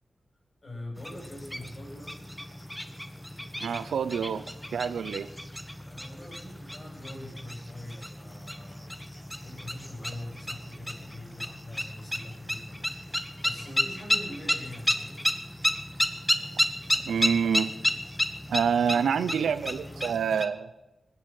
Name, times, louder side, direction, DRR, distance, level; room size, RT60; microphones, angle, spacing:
voice 1, 0.6-2.3 5.9-9.0 9.4-12.8 13.4-15.2 18.8-20.2, left 1 dB, 45° left, -1 dB, 7.2 m, -43 dB
sound 1, 1.0-20.5, equal, 5° left, 1.4 m, -32 dB
voice 2, 3.6-5.3 17.0-17.7 18.5-20.7, right 7 dB, 90° right, 14 dB, 0.6 m, -27 dB
19.0 x 8.2 x 9.0 m, 1.0 s
cardioid pair, 45°, 0 cm